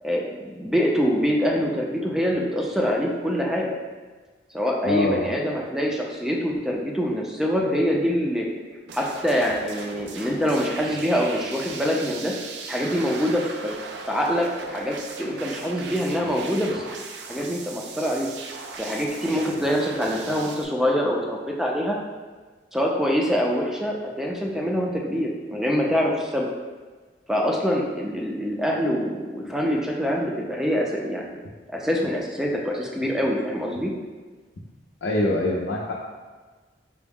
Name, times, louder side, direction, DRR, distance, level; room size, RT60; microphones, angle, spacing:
voice 1, 0.0-3.7 4.5-8.5 8.9-12.3 12.6-13.7 14.1-16.8 17.3-18.3 18.8-22.0 22.7-26.5 27.3-31.4 31.7-33.9, equal, 5° right, -1 dB, 0.4 m, -25 dB
voice 2, 4.8-5.3 35.0-35.9, left 2 dB, 75° left, -4 dB, 0.5 m, -24 dB
sound 1, 8.9-20.7, right 4 dB, 70° right, 0.4 m, -38 dB
4.5 x 2.0 x 3.5 m, 1.4 s
head